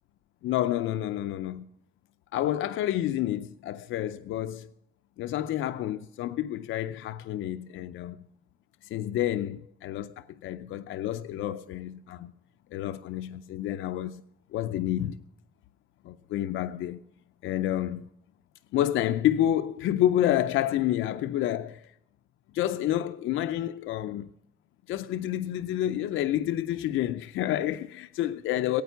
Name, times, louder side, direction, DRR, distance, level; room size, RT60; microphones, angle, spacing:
voice 1, 0.4-1.7 2.3-4.7 5.2-8.2 8.8-12.3 12.7-14.2 14.5-15.2 16.0-17.0 17.4-18.1 18.7-21.9 22.5-24.3 24.9-28.8, left 12 dB, 80° left, 0.6 m, -29 dB
17.5 x 9.4 x 6.8 m
cardioid pair, 90°, 20 cm